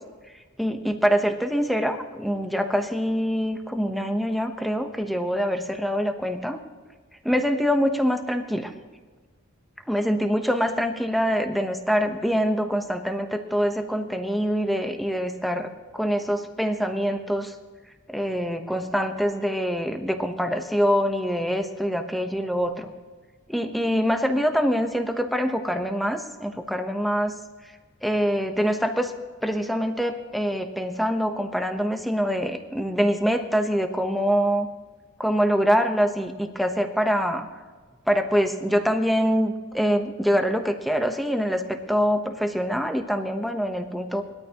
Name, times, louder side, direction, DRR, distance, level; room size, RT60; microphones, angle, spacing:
voice 1, 0.6-6.6 7.2-8.7 9.9-17.5 18.1-22.9 23.5-27.4 28.0-29.1 29.4-34.7 35.2-37.5 38.1-44.2, equal, ahead, 5 dB, 1.0 m, -24 dB
20.5 x 13.0 x 3.0 m, 1.4 s
head